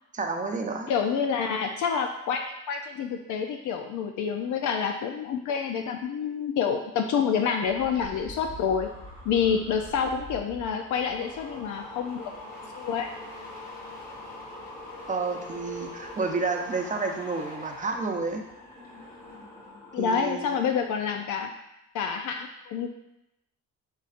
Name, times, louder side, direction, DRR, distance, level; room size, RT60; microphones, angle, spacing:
voice 1, 0.1-0.9 15.1-18.4 20.0-20.6, right 4 dB, 25° right, 3 dB, 0.7 m, -30 dB
voice 2, 0.9-8.9 9.2-12.3 12.7-13.1 19.9-21.5 21.9-22.9, left 6 dB, 80° left, 4 dB, 0.5 m, -28 dB
sound 1, 7.6-20.3 20.6-21.0, left 1 dB, 30° left, 1.5 m, -43 dB
5.5 x 3.7 x 2.5 m, 0.87 s
cardioid pair, 90°, 30 cm